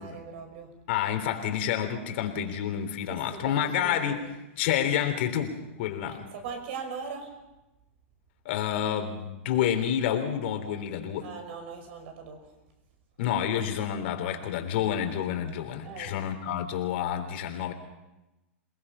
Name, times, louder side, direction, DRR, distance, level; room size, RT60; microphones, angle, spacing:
voice 1, 0.0-0.7 3.1-4.3 6.0-7.3 11.2-12.4 15.8-16.3, right 5 dB, 55° right, 6 dB, 5.5 m, -40 dB
voice 2, 0.9-4.2 4.6-6.3 8.4-11.3 13.2-17.7, left 9 dB, 55° left, 5 dB, 3.5 m, -29 dB
28.0 x 19.5 x 5.6 m, 0.99 s
supercardioid pair, 150°, 7 cm